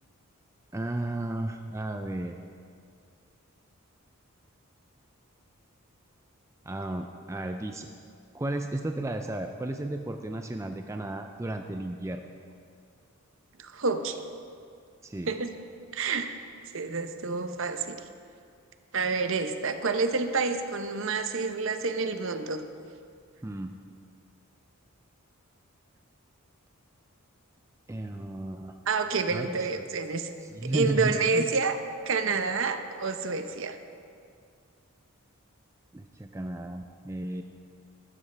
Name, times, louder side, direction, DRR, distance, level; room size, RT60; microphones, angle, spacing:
voice 1, 0.7-2.3 6.6-7.9 8.3-12.2 15.0-15.3 23.4-23.7 27.9-28.7 29.3-29.8 30.5-31.5 35.9-37.4, right 1 dB, 15° right, 5 dB, 0.3 m, -33 dB
voice 2, 13.6-14.2 15.3-15.5 15.9-16.3 16.7-18.0 18.9-22.6 28.9-30.3 30.7-31.8 32.1-33.8, right 4 dB, 60° right, 8 dB, 0.7 m, -28 dB
15.5 x 12.5 x 3.4 m, 2.3 s
head